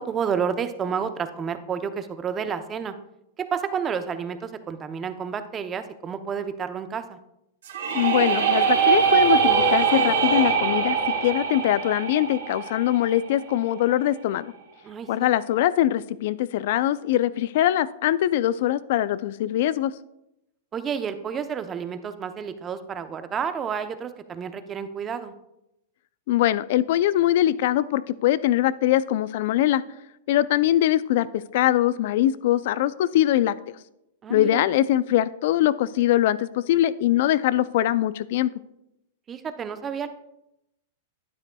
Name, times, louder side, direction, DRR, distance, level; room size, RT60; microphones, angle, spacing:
voice 1, 0.0-2.9 3.4-7.2 14.8-15.3 20.7-25.3 34.2-34.6 39.3-40.1, right 7 dB, 25° right, 9 dB, 0.7 m, -30 dB
sound 1, 7.6-13.5, right 7 dB, 80° right, 3.2 m, -22 dB
voice 2, 7.9-14.5 15.1-19.9 26.3-29.8 30.3-33.5 34.3-38.5, left 13 dB, 60° left, 17 dB, 0.4 m, -22 dB
sound 2, 8.5-12.6, left 8 dB, 40° left, 1.4 m, -35 dB
12.0 x 9.7 x 2.3 m, 0.86 s
hypercardioid pair, 120°, 0 cm